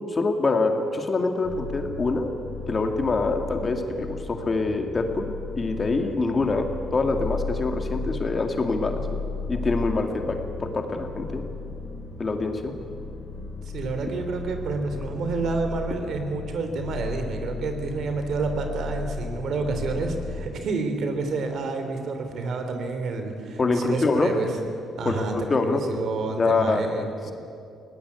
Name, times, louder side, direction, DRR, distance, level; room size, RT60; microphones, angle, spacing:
voice 1, 0.1-2.3 2.7-9.0 9.5-11.4 12.2-12.7 23.6-24.3 25.0-26.1 26.4-27.1, left 3 dB, 35° left, 5 dB, 2.3 m, -25 dB
sound 1, 1.4-20.5, left 4 dB, 80° left, 5.5 m, -35 dB
voice 2, 13.7-24.5 25.0-27.3, right 3 dB, 65° right, 6 dB, 3.1 m, -29 dB
20.0 x 17.5 x 8.4 m, 2.5 s
cardioid pair, 90°, 0 cm